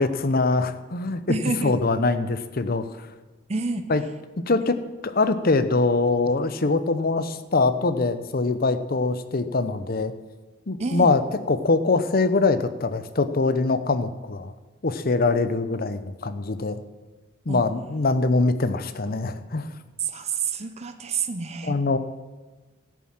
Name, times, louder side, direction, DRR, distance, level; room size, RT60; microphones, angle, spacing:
voice 1, 0.0-1.4 1.6-3.1 3.9-4.0 4.5-4.8 5.0-10.1 10.7-11.2 11.5-14.5 14.8-16.8 17.5-19.7 21.6-22.0, left 3 dB, 50° left, 11 dB, 0.8 m, -23 dB
voice 2, 1.3-1.8 3.5-3.9 10.8-11.1 17.5-17.6 20.0-21.8, right 4 dB, 35° right, 8 dB, 0.7 m, -28 dB
13.0 x 7.3 x 8.8 m, 1.3 s
head